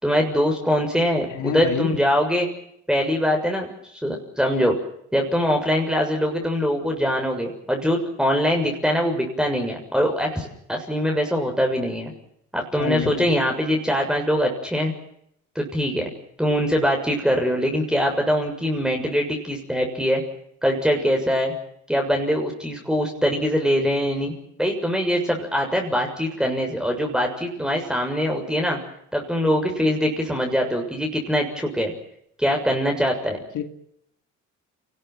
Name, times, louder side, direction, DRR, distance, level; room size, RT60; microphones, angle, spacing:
voice 1, 0.0-2.5 2.9-4.7 5.1-12.1 12.5-14.9 15.6-16.1 16.4-20.2 20.6-21.5 21.9-28.8 29.1-31.9 32.4-33.4, equal, ahead, 2 dB, 6.9 m, -23 dB
voice 2, 1.4-2.0 12.8-13.3 33.5-33.6, left 10 dB, 75° left, 7 dB, 2.7 m, -27 dB
28.0 x 20.5 x 7.8 m, 0.72 s
cardioid pair, 90°, 30 cm